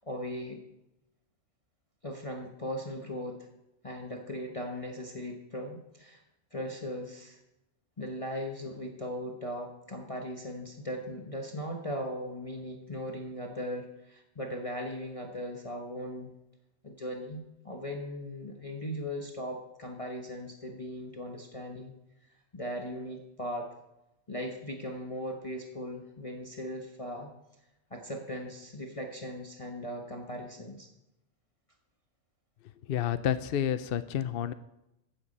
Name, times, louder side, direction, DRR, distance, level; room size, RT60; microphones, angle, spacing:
voice 1, 0.1-0.6 2.0-3.4 3.8-6.2 6.5-7.4 8.0-16.3 16.8-21.9 22.5-23.7 24.3-27.3 27.9-30.9, equal, 25° left, 1 dB, 1.3 m, -38 dB
voice 2, 32.9-34.5, left 10 dB, 60° left, 13 dB, 0.7 m, -29 dB
14.5 x 8.6 x 5.3 m, 0.89 s
omnidirectional pair, 1.3 m